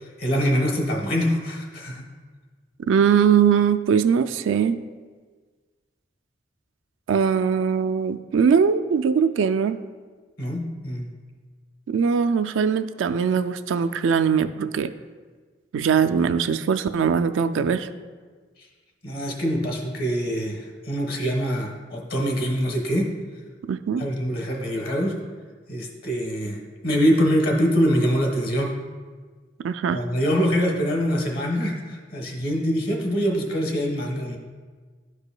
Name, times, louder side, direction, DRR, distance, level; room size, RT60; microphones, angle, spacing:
voice 1, 0.2-2.0 10.4-11.1 19.0-23.1 24.0-25.1 25.7-28.7 29.9-34.4, equal, 55° left, 0 dB, 1.2 m, -24 dB
voice 2, 2.9-4.8 7.1-9.8 11.9-14.9 15.7-17.9 23.7-24.0 29.6-30.0, right 6 dB, 80° right, 10 dB, 0.3 m, -21 dB
12.0 x 4.9 x 2.2 m, 1.5 s
head